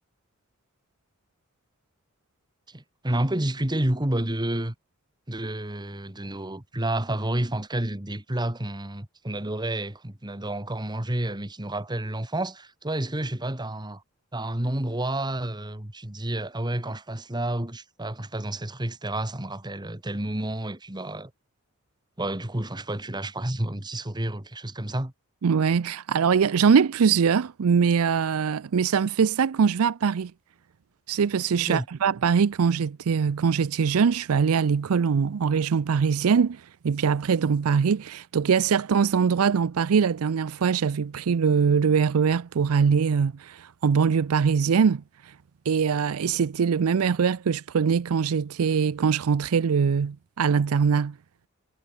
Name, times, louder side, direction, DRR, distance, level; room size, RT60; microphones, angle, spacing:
voice 1, 2.7-4.8 5.3-14.0 14.3-21.3 22.2-25.1 31.7-31.9, right 1 dB, 20° right, 1.8 m, -30 dB
voice 2, 25.4-30.3 31.1-45.0 45.7-51.2, right 6 dB, 90° right, 0.5 m, -22 dB
head